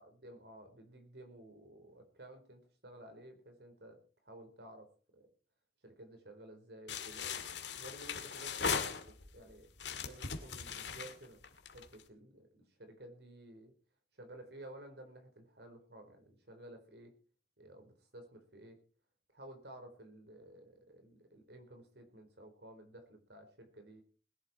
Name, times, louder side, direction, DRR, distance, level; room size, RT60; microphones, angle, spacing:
voice 1, 0.0-5.3 5.8-7.3 7.7-11.4 11.7-13.7 14.1-17.2 17.6-18.8 19.3-24.0, right 1 dB, 70° right, 6 dB, 4.4 m, -54 dB
sound 1, 6.9-9.4 9.8-12.0, left 6 dB, 85° left, 2.1 m, -39 dB
21.0 x 11.5 x 4.4 m, 0.38 s
head